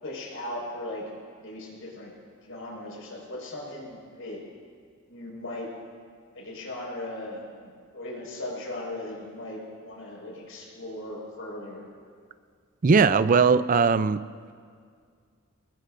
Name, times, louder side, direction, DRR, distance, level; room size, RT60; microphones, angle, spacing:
voice 1, 0.0-1.0 1.4-2.1 2.4-4.4 5.1-5.7 6.3-11.8, left 1 dB, 75° left, -3 dB, 5.3 m, -38 dB
voice 2, 12.8-14.2, right 5 dB, 40° right, 14 dB, 0.4 m, -19 dB
25.5 x 21.5 x 2.6 m, 2.1 s
head